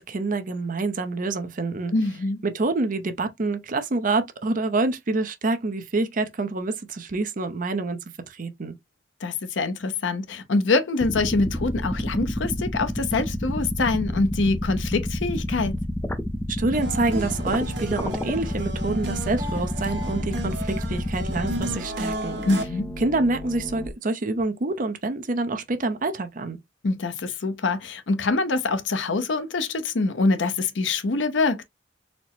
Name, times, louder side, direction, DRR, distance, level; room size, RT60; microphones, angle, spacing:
voice 1, 0.0-1.9 2.4-8.0 8.3-8.7 16.5-22.4 23.0-26.6, right 3 dB, 45° right, 0.6 m, -27 dB
voice 2, 1.9-2.4 9.2-15.8 22.5-22.9 26.8-31.6, left 3 dB, 80° left, 0.7 m, -24 dB
sound 1, 11.0-23.9, left 1 dB, 10° left, 0.4 m, -29 dB
sound 2, 16.7-22.6, right 1 dB, 75° right, 1.3 m, -34 dB
4.2 x 2.0 x 3.0 m
head